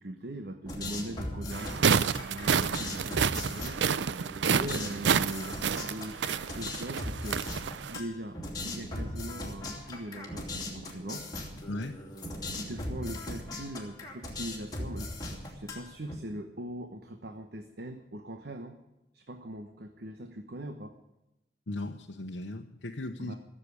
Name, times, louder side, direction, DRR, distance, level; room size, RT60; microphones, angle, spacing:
voice 1, 0.0-4.2 4.5-7.4 7.9-11.3 12.6-18.8 19.1-20.9 23.2-23.3, right 1 dB, 60° right, 6 dB, 1.0 m, -41 dB
sound 1, 0.7-16.1, left 1 dB, 20° left, 2.8 m, -39 dB
sound 2, 1.5-8.0, right 6 dB, 80° right, 0.5 m, -29 dB
voice 2, 11.7-12.0 21.7-23.3, left 2 dB, 85° left, 1 dB, 0.9 m, -37 dB
15.0 x 7.6 x 9.7 m, 0.94 s
head